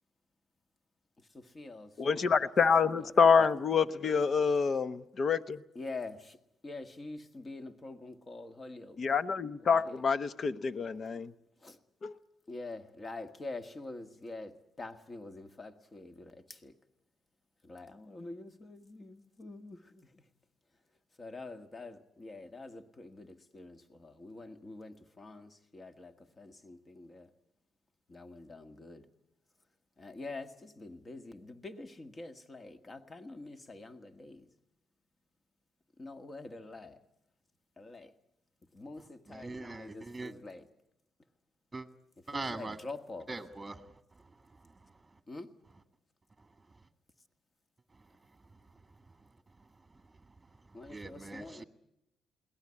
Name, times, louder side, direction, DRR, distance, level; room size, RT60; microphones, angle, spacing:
voice 1, 1.2-2.4 2.8-3.5 5.8-9.0 9.6-10.0 11.6-11.8 12.5-16.8 17.6-20.2 21.2-27.3 28.1-29.1 30.0-34.5 36.0-37.0 37.8-38.1 38.7-40.7 42.3-43.3 45.3-45.5 50.7-51.6, left 2 dB, 30° left, 1.8 m, -46 dB
voice 2, 2.0-5.6 9.0-11.3 12.0-12.1, left 5 dB, 50° left, 1.0 m, -27 dB
voice 3, 39.3-40.3 41.7-41.9 42.3-42.8 43.3-44.2 44.7-44.8 50.8-51.6, right 3 dB, 15° right, 1.7 m, -42 dB
21.5 x 18.0 x 9.9 m
cardioid pair, 90°, 0 cm